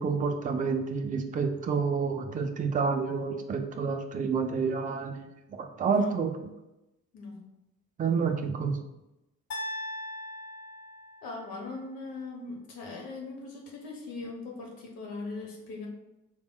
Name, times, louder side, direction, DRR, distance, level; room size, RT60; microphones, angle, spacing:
voice 1, 0.0-5.3 5.6-6.3 8.0-8.8, right 5 dB, 20° right, 5 dB, 0.5 m, -29 dB
voice 2, 5.8-6.2 7.1-7.4 11.2-15.9, left 3 dB, 55° left, -1 dB, 1.2 m, -40 dB
sound 1, 9.5-11.6, left 1 dB, 80° left, 0.6 m, -39 dB
4.9 x 3.4 x 2.3 m, 0.95 s
figure-of-eight pair, 45°, 42 cm